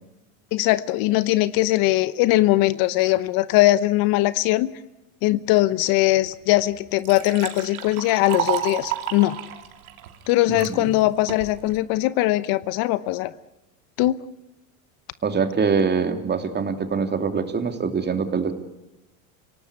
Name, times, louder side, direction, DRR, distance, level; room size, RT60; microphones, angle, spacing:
voice 1, 0.5-4.7 5.2-9.4 10.3-13.3 14.0-14.2, left 17 dB, 55° left, 16 dB, 1.0 m, -20 dB
Liquid, 6.2-6.3 6.7-10.7 11.3-11.8, right 11 dB, 80° right, 2.9 m, -31 dB
voice 2, 10.5-10.8 15.2-18.5, right 5 dB, 25° right, 7 dB, 2.8 m, -24 dB
26.5 x 18.0 x 9.8 m, 0.93 s
supercardioid pair, 105°, 42 cm